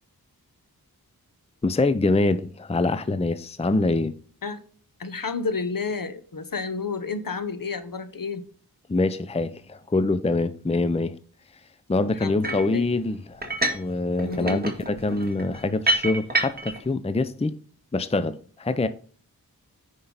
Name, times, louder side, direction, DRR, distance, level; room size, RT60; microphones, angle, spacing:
voice 1, 1.6-4.1 8.9-11.1 11.9-17.6 17.9-18.9, left 2 dB, 15° left, 0.6 m, -25 dB
voice 2, 5.0-8.4 12.1-12.8 14.2-14.6, left 4 dB, 60° left, 1.2 m, -31 dB
sound 1, 12.4-12.7 13.4-13.9 14.2-16.8, right 2 dB, 25° right, 2.0 m, -27 dB
9.4 x 5.5 x 4.0 m
wide cardioid pair, 60°, 38 cm